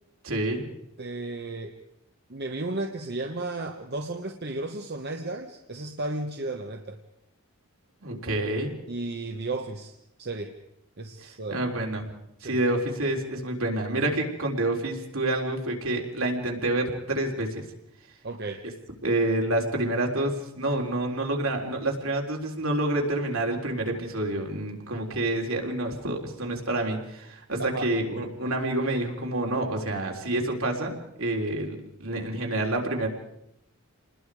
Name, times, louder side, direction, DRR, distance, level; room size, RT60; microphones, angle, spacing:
voice 1, 0.2-0.7 8.0-8.7 11.5-12.0 12.4-17.6 19.0-33.1, right 1 dB, 70° right, 1 dB, 3.7 m, -28 dB
voice 2, 1.0-1.8 2.3-7.0 8.9-10.5 11.0-11.6 12.4-12.6 18.2-18.6 27.6-27.9, right 2 dB, 50° right, 4 dB, 1.2 m, -34 dB
28.0 x 20.5 x 4.9 m, 0.80 s
head